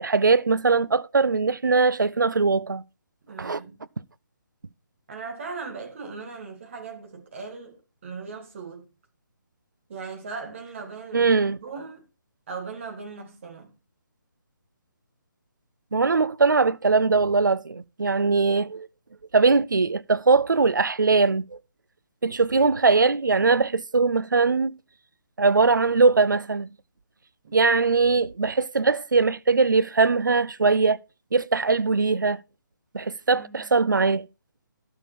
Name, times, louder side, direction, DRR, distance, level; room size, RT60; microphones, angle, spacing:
voice 1, 0.0-2.8 3.4-3.6 11.1-11.6 15.9-18.9 19.3-21.6 22.2-24.8 25.4-26.7 27.5-31.0 31.3-32.4 32.9-34.2, right 4 dB, 70° right, 0.5 m, -21 dB
voice 2, 3.3-3.8 5.1-8.9 9.9-12.1 12.5-13.7 27.4-27.6 33.3-33.8, right 4 dB, 40° right, 1.9 m, -38 dB
12.0 x 6.4 x 4.3 m
figure-of-eight pair, 145°, 11 cm